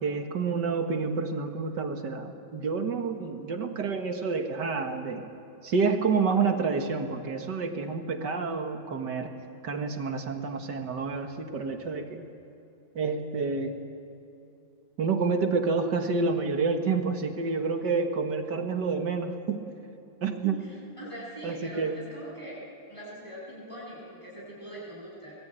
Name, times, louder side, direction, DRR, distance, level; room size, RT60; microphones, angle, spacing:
voice 1, 0.0-5.3 5.6-9.3 9.6-12.2 13.0-13.8 15.0-19.6 20.2-20.7 21.4-22.0, right 4 dB, 60° right, 5 dB, 2.1 m, -29 dB
voice 2, 20.4-22.6 22.9-25.3, equal, 15° left, -6 dB, 8.1 m, -42 dB
25.0 x 20.0 x 9.1 m, 2.7 s
omnidirectional pair, 2.2 m